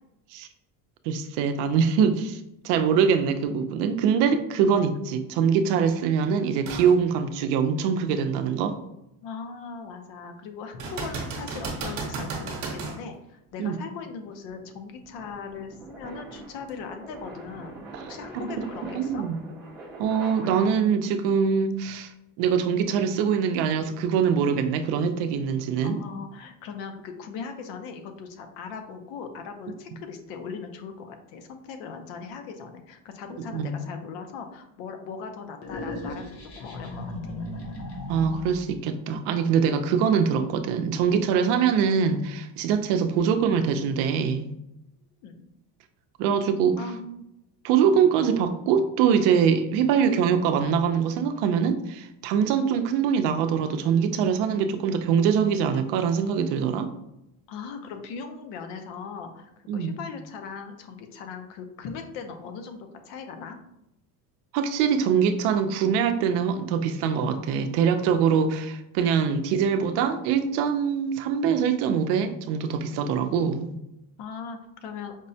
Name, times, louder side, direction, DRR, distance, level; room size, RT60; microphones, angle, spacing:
voice 1, 1.1-8.8 13.6-13.8 17.9-18.0 18.3-18.7 19.0-19.4 20.0-22.1 22.4-26.0 33.5-33.7 38.1-44.5 46.2-46.8 47.6-56.9 59.7-60.0 64.5-73.7, right 7 dB, 70° right, 8 dB, 0.5 m, -23 dB
sound 1, 6.7-6.9 7.5-7.6 10.8-13.0 16.7-16.8, right 3 dB, 40° right, 0.8 m, -33 dB
voice 2, 9.2-17.8 18.1-19.2 25.8-37.3 45.2-45.5 46.8-47.2 57.5-63.6 74.2-75.2, left 5 dB, 70° left, 6 dB, 0.7 m, -39 dB
sound 2, 13.5-21.1, right 2 dB, 10° right, 0.3 m, -44 dB
sound 3, 35.6-38.7, left 2 dB, 35° left, 0.6 m, -36 dB
5.1 x 2.1 x 2.7 m, 0.85 s
cardioid pair, 170°, 44 cm